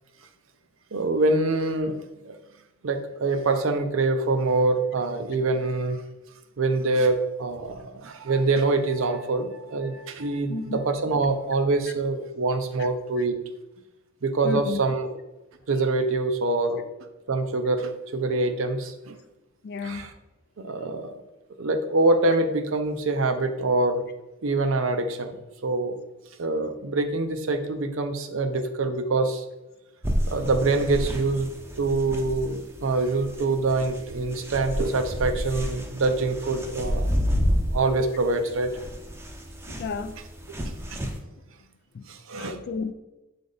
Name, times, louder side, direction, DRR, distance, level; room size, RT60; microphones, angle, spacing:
voice 1, 0.9-2.0 2.3-2.4 2.8-6.0 6.6-13.4 14.2-15.2 15.7-16.8 17.3-19.2 19.8-20.1 20.6-21.2 21.6-24.0 24.4-25.4 25.6-26.0 26.4-29.4 30.3-31.5 31.8-37.1 37.7-38.7 40.9-41.0 42.1-42.6, right 3 dB, 75° right, 7 dB, 0.6 m, -25 dB
voice 2, 14.4-14.8 19.6-20.1 39.8-40.1 41.9-42.1 42.4-42.9, left 4 dB, 50° left, 9 dB, 0.3 m, -32 dB
sound 1, 30.0-41.2, equal, 10° right, 0.6 m, -30 dB
7.4 x 3.4 x 4.0 m, 1.0 s
head